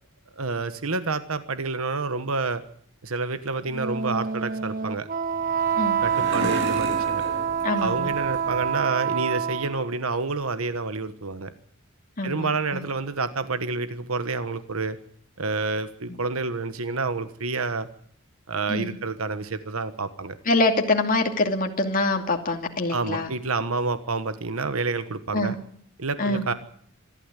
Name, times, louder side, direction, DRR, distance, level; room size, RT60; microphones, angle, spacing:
voice 1, 0.4-2.6 3.0-5.1 6.0-7.2 7.8-11.5 12.2-15.0 15.4-17.9 18.5-20.4 22.9-25.6 26.0-26.5, right 3 dB, 80° right, 11 dB, 1.3 m, -28 dB
Wind instrument woodwind instrument, 3.7-9.9, right 7 dB, 40° right, 1.2 m, -26 dB
sound 1, 5.2-8.8, right 1 dB, 65° right, 6.2 m, -35 dB
voice 2, 7.6-8.1 12.2-12.8 18.7-19.0 20.5-23.3 25.3-25.5 26.2-26.5, left 2 dB, 40° left, 2 dB, 2.6 m, -25 dB
25.5 x 12.5 x 9.8 m, 0.62 s
head